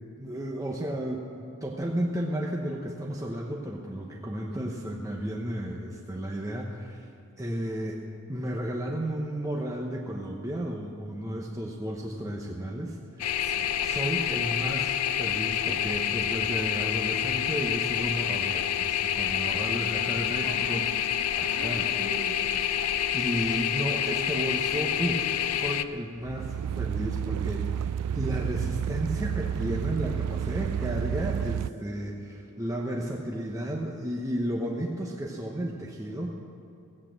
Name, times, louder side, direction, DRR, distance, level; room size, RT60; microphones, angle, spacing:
voice 1, 0.2-7.1 7.4-8.0 8.3-13.3 13.8-20.9 21.4-21.9 23.1-36.3, equal, 15° right, -1 dB, 0.9 m, -33 dB
voice 2, 4.5-4.8 13.4-13.7 19.3-19.8 20.4-20.9 21.4-22.6, right 2 dB, 50° right, -1 dB, 2.1 m, -41 dB
sound 1, 13.2-25.8, left 10 dB, 80° left, 0.5 m, -28 dB
sound 2, 26.2-31.7, right 8 dB, 90° right, 0.3 m, -30 dB
16.0 x 8.6 x 7.5 m, 2.7 s
head